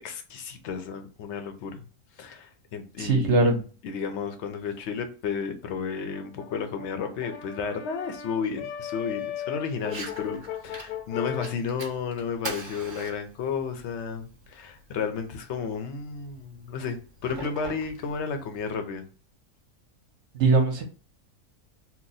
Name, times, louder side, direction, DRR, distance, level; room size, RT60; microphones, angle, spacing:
voice 1, 0.0-1.8 2.2-3.5 3.8-19.0, left 5 dB, 60° left, 0.8 m, -32 dB
voice 2, 3.0-3.6 20.3-20.8, right 3 dB, 60° right, 0.9 m, -21 dB
Brass instrument, 6.1-11.6, left 10 dB, 80° left, 1.1 m, -37 dB
Fire, 9.8-18.8, right 2 dB, 30° right, 0.5 m, -43 dB
2.9 x 2.2 x 4.0 m
omnidirectional pair, 1.6 m